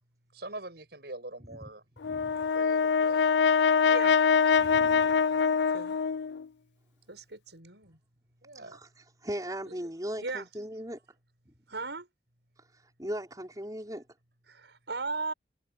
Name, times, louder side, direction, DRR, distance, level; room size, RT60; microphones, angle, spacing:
voice 1, 0.3-1.8 2.5-3.3 5.6-5.8 8.4-8.8, right 2 dB, 65° right, 7.6 m, -44 dB
Brass instrument, 2.0-6.4, left 6 dB, 85° left, 0.5 m, -24 dB
voice 2, 2.0-2.4 3.5-3.7 4.6-5.3 8.7-8.9 9.2-11.0 13.0-14.0, equal, 20° right, 5.4 m, -38 dB
voice 3, 3.8-4.2 5.3-6.0 7.1-8.0 9.7-9.9 10.2-10.5 11.7-12.1 14.5-15.3, right 3 dB, 85° right, 6.5 m, -38 dB
head